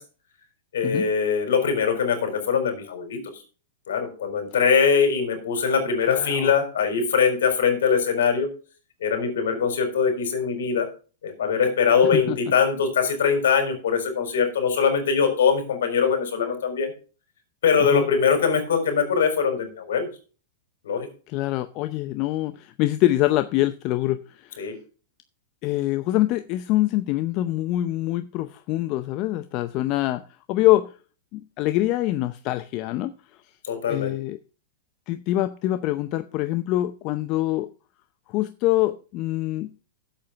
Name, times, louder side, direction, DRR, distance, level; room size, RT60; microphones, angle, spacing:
voice 1, 0.7-3.2 3.9-8.5 9.0-10.9 11.2-16.9 17.6-20.1 20.8-21.1 24.6-24.7 33.6-34.1, left 6 dB, 75° left, 5 dB, 4.2 m, -22 dB
voice 2, 6.0-6.5 12.0-12.4 17.8-18.1 21.3-24.6 25.6-30.2 30.5-30.9 31.3-33.1 33.9-34.4 35.1-37.7 38.3-39.7, left 16 dB, 45° left, 10 dB, 0.6 m, -24 dB
8.6 x 7.8 x 5.7 m, 0.36 s
hypercardioid pair, 120°, 0 cm